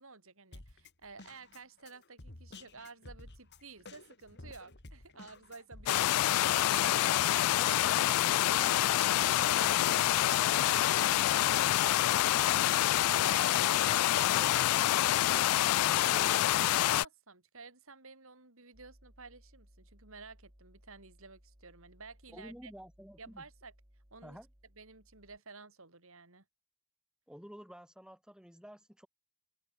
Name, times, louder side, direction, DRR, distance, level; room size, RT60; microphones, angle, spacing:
voice 1, 0.0-5.9 6.2-7.1 10.9-11.2 15.5-15.7 16.0-16.1 16.5-22.7 23.2-23.7 24.1-24.4 24.8-26.4, right 4 dB, 65° right, 5.0 m, -52 dB
Drum kit, 0.5-5.9, left 2 dB, 50° left, 2.5 m, -52 dB
sound 1, 5.9-17.0, left 13 dB, 85° left, 0.3 m, -27 dB
voice 2, 6.8-10.8 11.2-11.5 12.1-16.6 22.3-23.4 24.2-24.5 27.3-29.1, equal, 5° right, 5.8 m, -53 dB
sound 2, 18.7-25.4, equal, 20° right, 3.9 m, -63 dB
open air
head